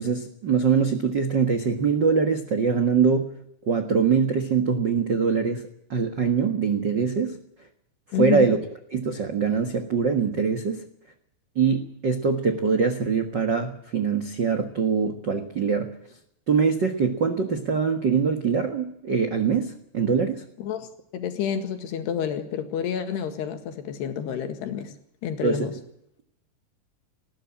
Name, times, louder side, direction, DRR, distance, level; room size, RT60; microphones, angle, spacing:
voice 1, 0.0-3.4 3.7-7.4 8.2-8.6 8.9-10.9 11.5-16.0 16.5-20.4 25.4-25.7, right 5 dB, 85° right, 6 dB, 0.9 m, -23 dB
voice 2, 8.1-8.5 20.6-24.9 25.2-25.7, left 8 dB, 80° left, 8 dB, 4.0 m, -29 dB
19.5 x 16.0 x 8.7 m, 0.76 s
omnidirectional pair, 4.7 m